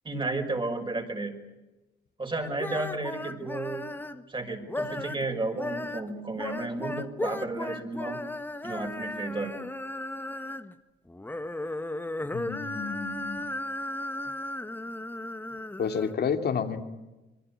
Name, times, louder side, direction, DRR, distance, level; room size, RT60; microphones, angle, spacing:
voice 1, 0.0-1.3 2.2-3.9 4.3-8.2 8.6-9.6, right 2 dB, 25° right, 4 dB, 5.9 m, -32 dB
sound 1, 2.4-4.2 4.6-5.2 5.5-10.7 11.1-16.1, left 1 dB, 10° left, 1.4 m, -35 dB
voice 2, 12.3-13.4 15.8-16.8, left 6 dB, 55° left, 6 dB, 2.7 m, -30 dB
26.5 x 23.0 x 8.5 m, 1.1 s
cardioid pair, 90°, 20 cm